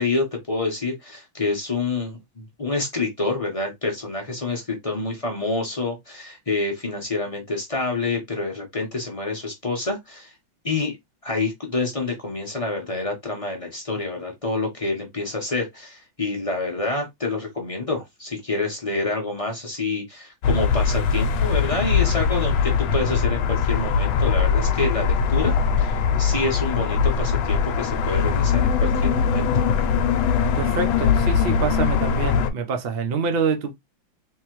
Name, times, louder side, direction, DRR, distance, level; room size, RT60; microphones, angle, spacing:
voice 1, 0.0-10.3 10.6-11.0 11.2-29.5, left 3 dB, 30° left, 0.6 m, -27 dB
sound 1, 20.4-32.5, left 6 dB, 85° left, 1.4 m, -21 dB
voice 2, 30.5-33.7, right 5 dB, 65° right, 0.5 m, -26 dB
3.7 x 3.0 x 3.0 m
omnidirectional pair, 2.1 m